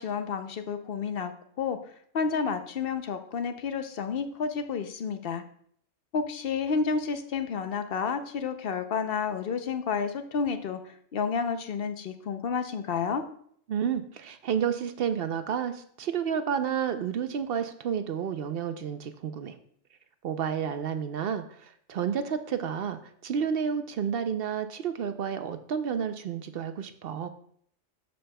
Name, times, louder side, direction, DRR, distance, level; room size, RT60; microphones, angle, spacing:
voice 1, 0.0-1.3 1.6-1.8 2.1-5.4 6.1-13.2, left 5 dB, 55° left, 9 dB, 0.8 m, -30 dB
voice 2, 13.7-19.5 20.2-27.3, right 7 dB, 60° right, 9 dB, 0.7 m, -30 dB
13.5 x 5.3 x 2.2 m, 0.63 s
omnidirectional pair, 1.3 m